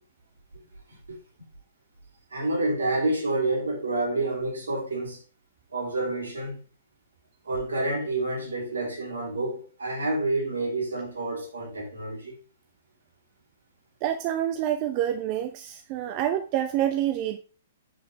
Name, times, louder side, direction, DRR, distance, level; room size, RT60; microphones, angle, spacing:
voice 1, 2.3-5.2 5.7-6.5 7.4-12.3, right 2 dB, 70° right, 3.9 m, -28 dB
voice 2, 14.0-17.4, right 11 dB, 35° right, 0.7 m, -27 dB
8.0 x 7.3 x 3.2 m
figure-of-eight pair, 115°, 0 cm